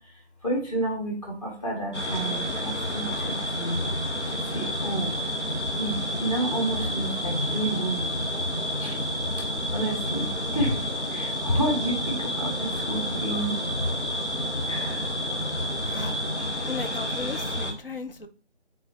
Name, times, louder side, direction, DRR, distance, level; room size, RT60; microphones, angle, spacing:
voice 1, 0.4-1.1 1.4-3.3 3.6-3.8 4.5-5.1 5.8-8.0 8.8-8.9 9.7-10.3 10.5-10.7 11.1-13.6 14.7-15.0, right 1 dB, 30° left, -2 dB, 2.3 m, -29 dB
sound 1, 1.9-17.7, equal, 90° left, 1.4 m, -29 dB
voice 2, 15.8-16.2 16.7-18.3, left 4 dB, 55° left, 8 dB, 0.8 m, -36 dB
9.2 x 4.0 x 3.0 m, 0.38 s
figure-of-eight pair, 155°, 33 cm